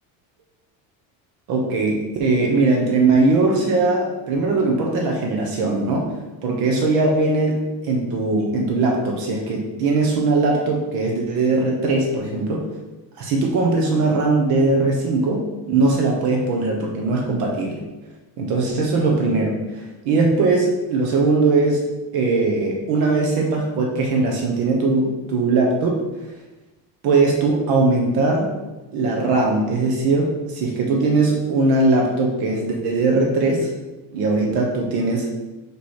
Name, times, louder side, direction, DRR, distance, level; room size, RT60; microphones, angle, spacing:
voice 1, 1.5-6.1 6.4-12.6 13.2-17.8 18.4-19.6 20.0-21.8 22.1-26.0 27.0-28.5 28.9-33.7 34.1-35.3, right 3 dB, 60° right, 0 dB, 1.2 m, -20 dB
5.1 x 4.8 x 4.3 m, 1.1 s
cardioid pair, 170°, 42 cm